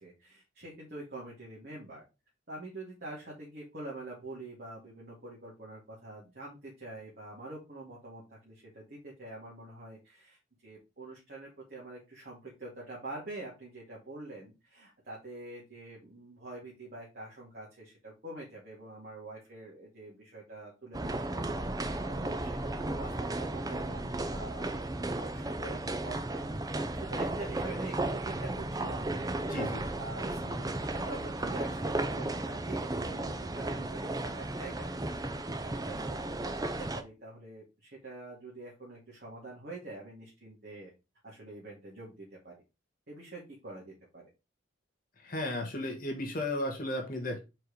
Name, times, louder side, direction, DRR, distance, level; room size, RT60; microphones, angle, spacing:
voice 1, 0.0-2.0 2.5-10.4 10.6-24.9 25.1-29.3 29.9-35.0 35.6-40.9 41.2-42.5 43.1-44.2, right 2 dB, 50° right, -5 dB, 2.4 m, -45 dB
sound 1, 20.9-37.0, right 2 dB, 20° right, 0.6 m, -34 dB
voice 2, 29.5-29.8 45.2-47.4, left 1 dB, 45° left, 2 dB, 1.5 m, -34 dB
4.8 x 4.6 x 5.0 m, 0.27 s
head